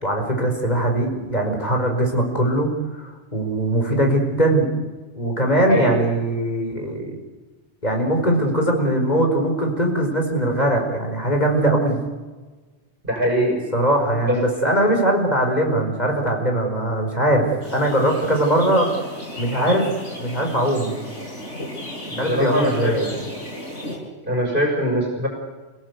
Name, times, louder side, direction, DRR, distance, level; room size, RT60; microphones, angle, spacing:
voice 1, 0.0-2.7 3.0-4.7 5.2-7.2 7.8-12.0 13.7-17.5 17.7-18.9 19.4-19.9 20.2-20.9 22.2-23.2, right 1 dB, 35° left, 2 dB, 5.1 m, -21 dB
voice 2, 5.6-5.9 13.1-13.6 14.3-14.4 22.1-22.9 24.3-25.3, right 1 dB, 45° right, 0 dB, 6.5 m, -21 dB
sound 1, 17.6-24.0, equal, 90° left, 8.0 m, -34 dB
29.0 x 17.5 x 8.2 m, 1.3 s
omnidirectional pair, 1.2 m